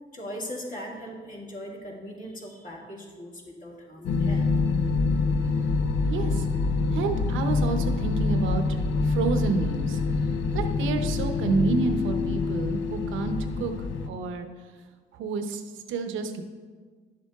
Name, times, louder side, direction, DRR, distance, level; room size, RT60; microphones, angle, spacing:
voice 1, 0.1-4.5, equal, 40° left, -2 dB, 2.0 m, -39 dB
sound 1, 4.0-14.1, left 4 dB, 70° left, 0.6 m, -26 dB
voice 2, 6.1-6.5 6.9-8.8 9.0-10.0 10.5-13.7 14.0-14.5 15.1-16.4, right 4 dB, 80° right, 7 dB, 0.7 m, -29 dB
sound 2, 6.5-11.9, left 1 dB, 20° left, 0.3 m, -41 dB
10.5 x 7.5 x 2.4 m, 1.5 s
cardioid pair, 90°, 20 cm